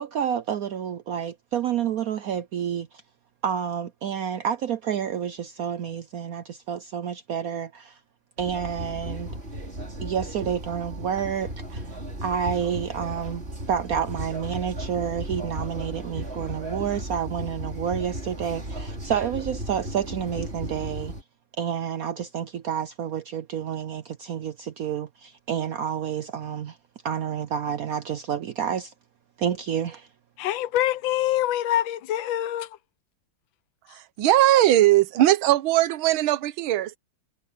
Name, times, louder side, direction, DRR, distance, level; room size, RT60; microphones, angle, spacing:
voice 1, 0.0-3.0 3.4-8.0 8.4-9.3 10.0-11.9 12.2-21.1 21.6-26.8 27.0-28.9 29.4-30.1, right 8 dB, 70° right, 0.8 m, -29 dB
sound 1, 8.4-21.2, right 1 dB, 30° right, 4.3 m, -35 dB
voice 2, 30.4-32.8, left 12 dB, 75° left, 1.4 m, -25 dB
voice 3, 33.9-37.0, right 14 dB, 90° right, 1.6 m, -20 dB
omnidirectional pair, 2.2 m